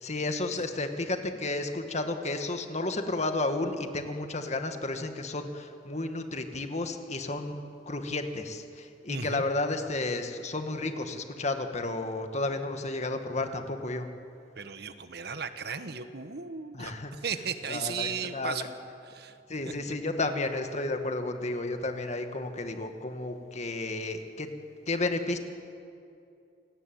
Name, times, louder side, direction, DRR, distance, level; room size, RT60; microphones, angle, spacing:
voice 1, 0.0-7.6 7.9-14.1 16.7-17.1 17.7-18.7 19.5-24.5 24.9-25.4, left 2 dB, 40° left, 6 dB, 2.1 m, -32 dB
voice 2, 9.1-9.4 14.6-18.7 19.1-19.4 19.7-19.9, right 6 dB, 65° right, 10 dB, 1.4 m, -36 dB
27.5 x 18.5 x 9.3 m, 2.5 s
head